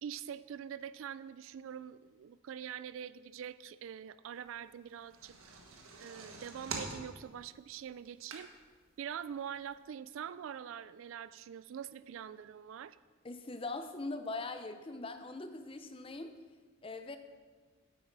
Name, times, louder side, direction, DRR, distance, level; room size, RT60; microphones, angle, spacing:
voice 1, 0.0-5.4 6.0-8.5 9.0-13.0, right 8 dB, 70° right, 16 dB, 0.3 m, -44 dB
sound 1, 4.9-8.8 9.3-9.4 9.7-9.8, right 3 dB, 85° right, 1.3 m, -45 dB
voice 2, 13.2-16.4 16.8-17.2, left 2 dB, 25° left, 8 dB, 0.6 m, -41 dB
8.8 x 8.2 x 4.7 m, 1.4 s
head